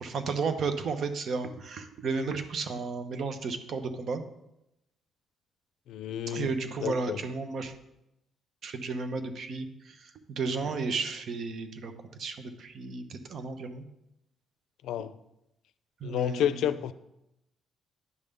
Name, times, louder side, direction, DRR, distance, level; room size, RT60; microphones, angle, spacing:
voice 1, 0.0-4.2 6.3-7.7 8.6-11.9 12.2-13.8 16.0-16.5, right 4 dB, 60° right, 0.9 m, -33 dB
voice 2, 5.9-6.5 6.8-7.2 14.8-15.1 16.0-16.9, left 10 dB, 85° left, 0.4 m, -31 dB
9.7 x 3.6 x 6.7 m
cardioid pair, 90°, 0 cm